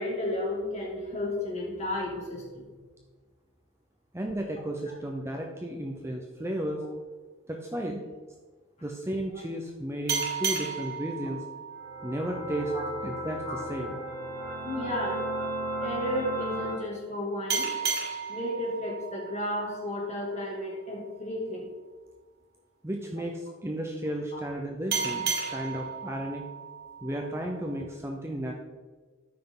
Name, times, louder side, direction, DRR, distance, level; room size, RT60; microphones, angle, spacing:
voice 1, 0.0-2.7 12.7-12.8 13.5-13.6 14.6-15.2 15.8-17.7 18.3-21.7 24.3-24.4, left 1 dB, 30° left, -3 dB, 2.6 m, -33 dB
voice 2, 4.1-6.8 7.5-8.1 8.8-11.4 12.0-12.7 13.0-14.0 22.8-26.4 27.0-28.5, right 1 dB, 10° right, 1 dB, 0.6 m, -34 dB
sound 1, 10.1-13.3 17.5-20.7 24.9-27.9, right 5 dB, 45° right, 2.2 m, -34 dB
sound 2, 11.7-16.8, right 1 dB, 65° right, 3.2 m, -35 dB
13.0 x 5.8 x 3.9 m, 1.4 s
head